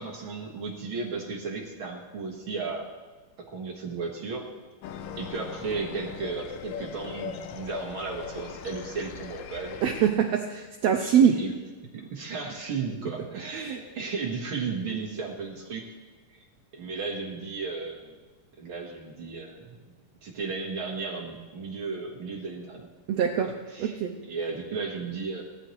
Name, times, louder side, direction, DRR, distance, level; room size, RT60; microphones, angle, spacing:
voice 1, 0.0-2.9 3.5-4.5 5.2-9.8 11.0-11.5 11.9-15.9 16.3-16.5 16.7-18.2 18.6-19.9 20.2-22.9 23.7-24.0 24.3-25.4, right 4 dB, 50° right, 0 dB, 1.7 m, -34 dB
sound 1, 4.8-10.1, left 7 dB, 85° left, 2.5 m, -39 dB
voice 2, 9.8-11.4 13.5-13.8 23.1-23.5 23.8-24.2, right 8 dB, 85° right, 4 dB, 1.5 m, -23 dB
18.0 x 13.0 x 3.2 m, 1.3 s
omnidirectional pair, 3.8 m